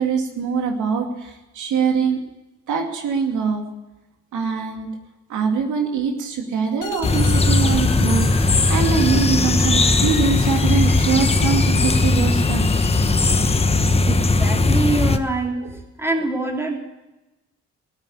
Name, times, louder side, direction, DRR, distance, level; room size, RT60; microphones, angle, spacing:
voice 1, 0.0-2.2 2.7-3.6 4.3-4.9 5.3-12.7 15.6-15.7, right 5 dB, 80° right, 3 dB, 2.5 m, -23 dB
sound 1, 6.8-13.7, left 9 dB, 85° left, 1.6 m, -34 dB
sound 2, 7.0-15.2, left 3 dB, 20° left, 1.1 m, -18 dB
voice 2, 14.0-15.6 16.0-16.8, right 2 dB, 10° right, 1 dB, 3.4 m, -24 dB
15.5 x 8.8 x 9.8 m, 1.0 s
cardioid pair, 90°, 30 cm